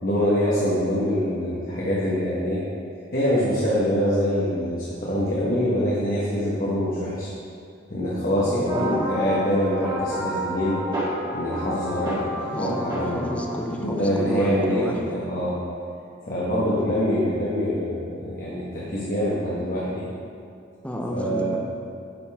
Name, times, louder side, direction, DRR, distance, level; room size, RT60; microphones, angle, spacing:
voice 1, 0.0-2.6 3.1-7.3 7.9-10.8 11.3-13.3 13.7-15.6 16.3-20.1 21.1-21.6, equal, 50° left, -8 dB, 1.2 m, -25 dB
voice 2, 8.4-9.1 12.5-15.0 16.7-16.9 20.8-21.6, equal, 5° left, 1 dB, 0.6 m, -31 dB
sound 1, 8.7-13.8, equal, 25° right, 1.7 m, -30 dB
9.0 x 5.4 x 3.5 m, 2.4 s
head